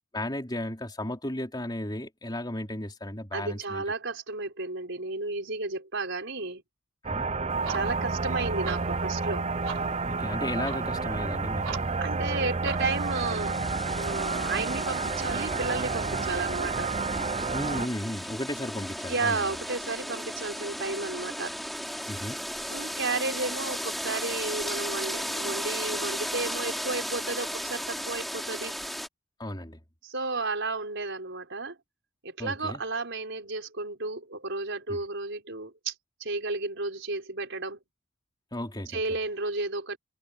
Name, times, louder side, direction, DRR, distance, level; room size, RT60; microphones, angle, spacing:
voice 1, 0.1-3.8 7.0-7.3 10.0-11.8 17.5-19.5 22.1-22.4 29.4-29.8 32.4-32.8 34.9-35.0 38.5-39.0, left 1 dB, 20° left, 3.7 m, -34 dB
voice 2, 3.3-6.6 7.7-9.5 12.0-13.6 14.0-16.9 19.1-21.6 22.7-28.8 30.0-31.8 32.2-35.9 36.2-37.8 38.9-40.0, right 3 dB, 60° right, 5.4 m, -33 dB
sound 1, 7.0-17.9, right 4 dB, 30° right, 0.7 m, -30 dB
sound 2, 7.5-13.1, right 5 dB, 75° right, 6.7 m, -44 dB
sound 3, 12.8-29.1, equal, ahead, 3.6 m, -35 dB
head